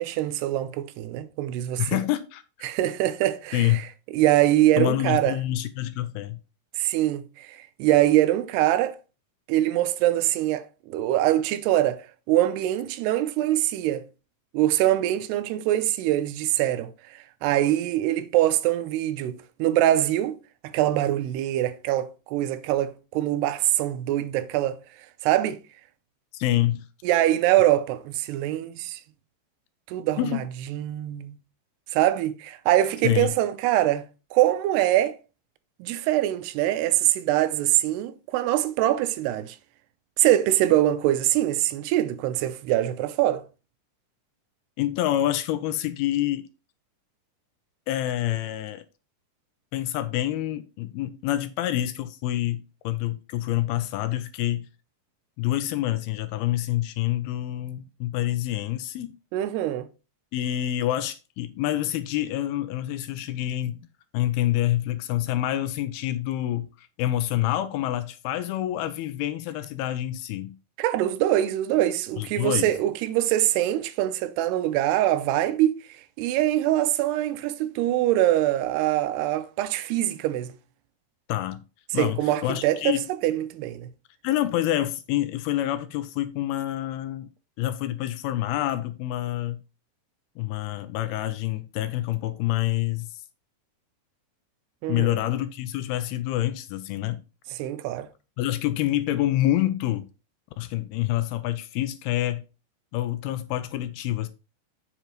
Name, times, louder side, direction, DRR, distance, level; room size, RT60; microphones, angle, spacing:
voice 1, 0.0-2.0 2.6-3.8 4.1-5.3 6.8-9.0 9.5-14.0 14.5-20.4 20.6-24.8 25.2-25.6 27.0-29.0 29.9-30.4 30.7-31.4 31.9-34.0 34.3-35.2 35.8-39.6 40.2-43.4 59.3-59.9 70.8-75.8 76.2-80.5 81.9-83.0 83.2-83.9 94.8-95.1 97.5-98.1, right 13 dB, 85° right, 2.7 m, -23 dB
voice 2, 1.8-2.7 3.5-3.8 4.8-6.4 26.3-26.9 30.2-30.5 33.0-33.3 44.8-46.5 47.9-48.8 49.7-54.7 55.4-59.1 60.3-63.8 64.1-70.6 72.2-72.7 81.3-81.6 81.9-83.1 84.2-87.3 87.6-89.6 90.4-93.2 94.9-97.2 98.4-100.1 100.6-102.4 102.9-104.3, left 14 dB, 80° left, 2.4 m, -27 dB
7.9 x 7.3 x 3.0 m
omnidirectional pair, 4.7 m